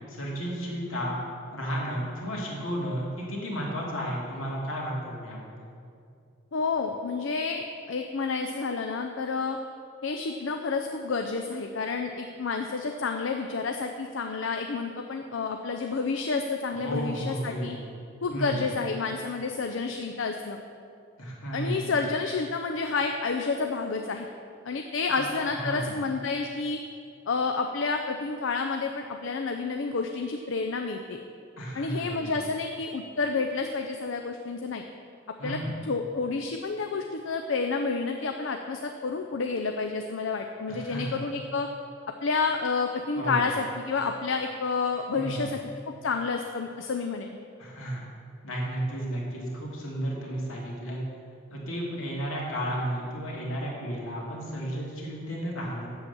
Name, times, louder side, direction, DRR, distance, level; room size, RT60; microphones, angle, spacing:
voice 1, 0.1-1.2 1.5-5.7 16.8-17.8 18.3-18.6 21.2-21.9 25.1-25.3 25.5-26.0 31.6-32.4 35.4-35.8 40.7-41.2 43.2-43.5 45.1-45.5 47.6-48.0 48.4-51.0 51.5-55.9, right 1 dB, 85° left, -3 dB, 2.5 m, -33 dB
voice 2, 6.5-9.6 10.0-17.8 18.2-20.6 21.5-24.3 24.7-26.8 27.3-31.2 31.7-34.8 35.4-35.6 35.9-41.7 42.2-45.6 46.0-47.3, left 4 dB, 70° left, 4 dB, 0.5 m, -29 dB
7.9 x 7.4 x 7.0 m, 2.4 s
head